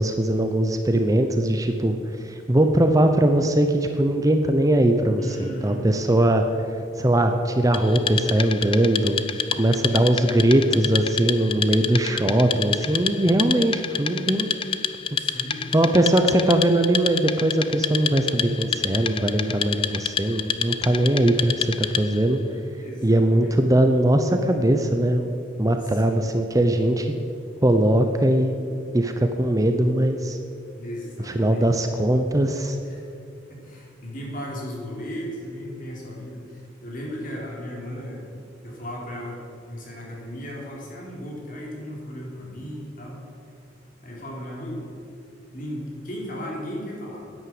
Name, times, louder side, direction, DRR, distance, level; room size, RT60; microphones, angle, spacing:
voice 1, 0.0-6.4 6.9-9.3 9.6-14.5 15.7-22.4 23.0-25.3 25.6-27.1 27.6-28.6 28.9-30.4 31.2-32.8, right 1 dB, 20° right, 6 dB, 0.7 m, -20 dB
voice 2, 5.2-5.8 9.5-10.0 15.2-16.0 22.8-23.6 25.8-26.3 30.8-31.7 32.8-33.1 33.5-38.3 38.6-39.4 39.7-43.2 44.0-44.8 45.5-47.3, equal, 45° left, -3 dB, 3.6 m, -36 dB
Wood, 7.7-22.3, left 7 dB, 30° left, 0.5 m, -29 dB
11.0 x 9.9 x 7.8 m, 2.6 s
head